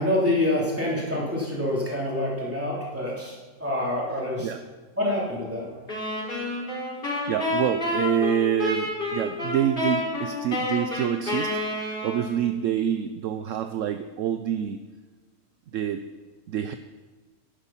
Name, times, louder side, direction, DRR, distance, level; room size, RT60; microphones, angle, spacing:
voice 1, 0.0-4.5 5.0-5.7, left 1 dB, 10° right, -5 dB, 3.1 m, -26 dB
sound 1, 5.9-12.5, left 1 dB, 35° left, 4.0 m, -29 dB
voice 2, 7.3-14.8 15.7-16.1 16.5-16.7, right 10 dB, 70° right, 9 dB, 0.8 m, -27 dB
11.5 x 10.5 x 5.7 m, 1.3 s
omnidirectional pair, 1.6 m